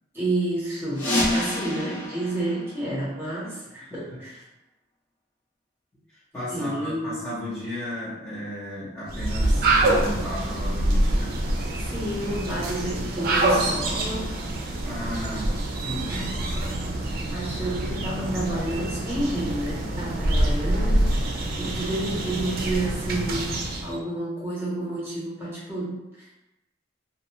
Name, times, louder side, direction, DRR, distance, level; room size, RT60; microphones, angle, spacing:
voice 1, 0.1-4.4 6.5-7.2 11.8-14.4 16.1-16.3 17.3-21.2 21.6-26.3, right 1 dB, 15° right, -8 dB, 1.0 m, -30 dB
sound 1, 0.9-3.5, left 1 dB, 80° left, 1.1 m, -28 dB
voice 2, 3.9-4.2 6.1-11.4 14.9-16.2, equal, 15° left, -13 dB, 0.8 m, -34 dB
sound 2, 9.1-24.0, right 1 dB, 55° right, 0.4 m, -26 dB
2.6 x 2.3 x 2.9 m, 0.96 s
head